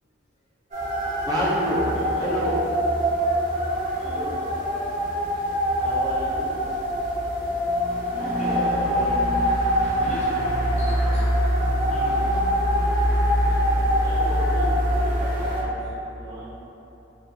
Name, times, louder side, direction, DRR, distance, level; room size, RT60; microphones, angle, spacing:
sound 1, 0.7-15.6, equal, 45° right, 0.9 m, -23 dB
voice 1, 1.3-1.8 2.2-2.6 5.8-6.6 14.0-16.5, equal, 20° right, -8 dB, 0.5 m, -30 dB
voice 2, 1.9-2.3 4.0-4.4 4.7-4.8 5.3-5.5 6.5-6.8 7.4-7.7 8.1-11.3 11.8-12.4, equal, 40° left, -7 dB, 0.7 m, -37 dB
3.9 x 2.4 x 2.6 m, 2.9 s
head